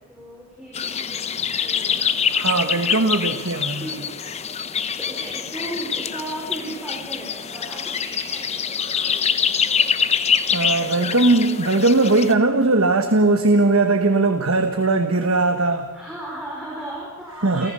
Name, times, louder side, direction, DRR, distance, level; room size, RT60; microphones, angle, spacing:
voice 1, 0.0-2.4 2.8-3.4 3.8-4.1 4.8-9.7 15.9-17.7, right 1 dB, 5° right, -4 dB, 4.3 m, -36 dB
sound 1, 0.7-12.3, left 7 dB, 30° left, 0.8 m, -25 dB
voice 2, 2.3-3.9 10.5-15.9 17.4-17.7, right 2 dB, 80° right, 6 dB, 1.4 m, -19 dB
29.5 x 14.5 x 6.9 m, 1.2 s
head